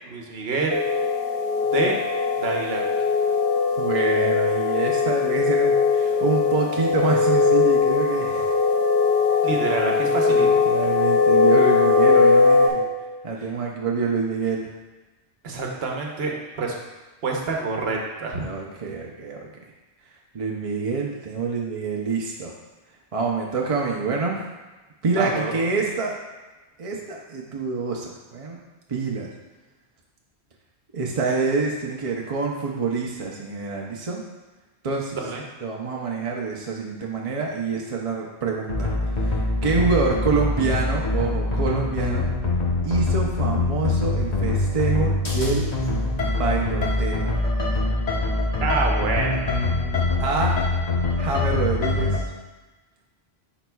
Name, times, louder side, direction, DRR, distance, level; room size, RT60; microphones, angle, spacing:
voice 1, 0.0-0.8 1.7-2.0 2.3-2.9 9.4-10.5 15.4-16.7 17.2-18.5 25.2-25.6 35.1-35.4 48.6-49.5, right 3 dB, 70° right, 0 dB, 1.1 m, -27 dB
sound 1, 0.7-12.7, left 4 dB, 70° left, 1.2 m, -20 dB
voice 2, 3.8-8.5 10.3-12.8 13.2-14.7 18.4-19.5 20.3-22.6 23.1-24.5 25.0-26.2 26.8-28.6 28.9-29.3 30.9-34.2 34.8-35.2 35.6-42.3 42.8-45.7 46.3-47.2 50.2-50.6 51.2-52.3, right 4 dB, 40° right, -1 dB, 0.6 m, -26 dB
sound 2, 38.7-52.2, left 2 dB, 40° left, 1.1 m, -24 dB
10.5 x 4.1 x 2.3 m, 1.2 s
omnidirectional pair, 1.1 m